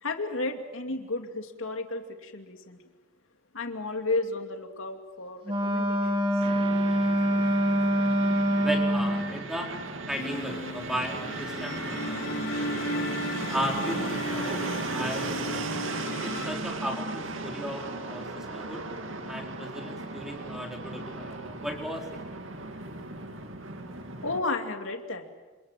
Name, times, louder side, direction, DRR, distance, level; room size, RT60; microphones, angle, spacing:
voice 1, 0.0-2.8 3.5-6.1 24.2-25.2, left 3 dB, 85° left, 5 dB, 2.7 m, -33 dB
Wind instrument woodwind instrument, 5.4-9.3, equal, 25° right, 3.5 m, -25 dB
Fixed-wing aircraft airplane, 6.4-24.4, right 2 dB, 75° right, 2.4 m, -36 dB
voice 2, 8.6-9.7 10.1-12.3 12.8-13.0 13.5-15.4 16.2-18.9 19.2-22.1, equal, ahead, 1 dB, 4.3 m, -35 dB
sound 1, 10.2-16.5, left 1 dB, 60° left, 3.9 m, -35 dB
28.5 x 27.5 x 7.6 m, 1.2 s
head